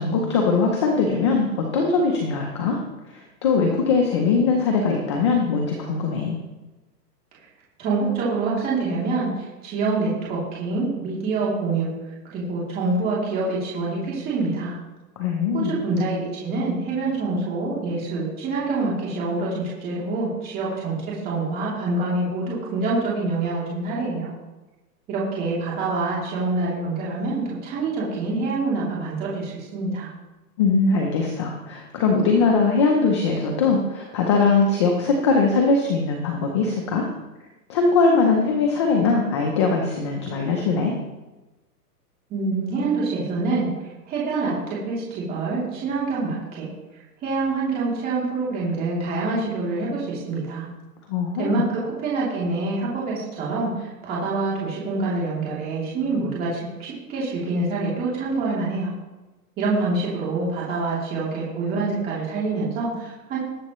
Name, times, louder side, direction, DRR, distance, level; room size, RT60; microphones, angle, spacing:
voice 1, 0.0-2.8 3.1-6.4 15.2-15.8 30.6-37.1 37.7-40.9 51.1-51.6, left 4 dB, 20° left, 1 dB, 0.6 m, -21 dB
voice 2, 7.8-11.9 12.3-14.8 15.5-24.3 25.1-30.1 42.3-43.7 44.1-46.7 47.2-50.7 51.4-58.9 59.6-63.4, right 3 dB, 20° right, -6 dB, 3.0 m, -26 dB
20.0 x 7.6 x 3.1 m, 1.1 s
hypercardioid pair, 165°, 49 cm